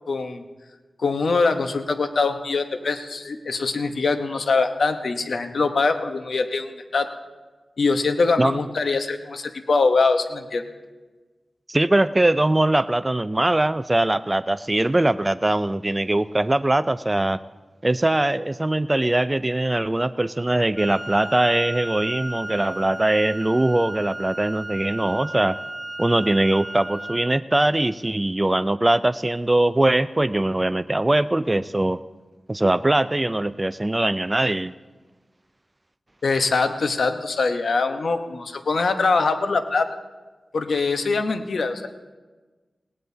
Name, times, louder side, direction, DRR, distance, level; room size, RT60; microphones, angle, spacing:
voice 1, 0.1-0.4 1.0-7.1 7.8-10.7 36.2-39.9 40.5-41.9, left 4 dB, 80° left, 7 dB, 0.9 m, -23 dB
voice 2, 11.7-17.4 17.8-25.6 26.0-32.0 32.5-34.7, right 1 dB, 25° right, 12 dB, 0.3 m, -21 dB
Wind instrument woodwind instrument, 20.7-27.4, right 1 dB, 10° right, 1.2 m, -35 dB
19.5 x 17.5 x 2.7 m, 1.3 s
cardioid pair, 50°, 0 cm